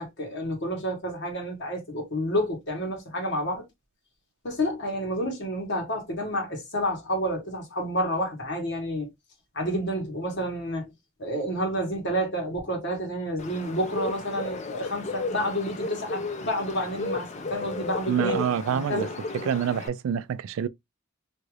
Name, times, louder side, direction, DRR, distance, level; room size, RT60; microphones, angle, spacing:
voice 1, 0.0-3.6 4.4-9.1 9.5-10.9 11.2-18.4 18.7-19.1, equal, 60° left, 1.4 m, -29 dB
Bird, 13.4-19.9, left 3 dB, 35° left, 0.5 m, -34 dB
voice 2, 18.1-19.1 19.4-20.7, right 8 dB, 80° right, 0.3 m, -27 dB
2.8 x 2.4 x 3.1 m
head